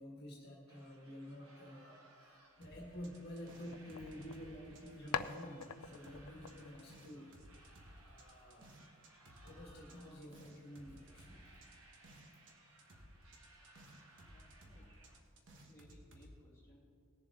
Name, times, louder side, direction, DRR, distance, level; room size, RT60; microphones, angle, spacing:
voice 1, 0.0-7.3 8.1-8.8 9.4-11.5, equal, 50° left, -2 dB, 1.6 m, -50 dB
sound 1, 0.7-15.2, right 2 dB, 75° right, 1.6 m, -64 dB
sound 2, 2.6-5.7 5.9-12.5 12.8-16.3, right 1 dB, 55° right, 1.4 m, -59 dB
sound 3, 3.5-4.8 5.1-7.7, left 7 dB, 75° left, 0.4 m, -45 dB
voice 2, 14.2-14.9 15.7-16.9, equal, 10° left, -7 dB, 2.8 m, -64 dB
19.0 x 7.2 x 4.1 m, 2.3 s
head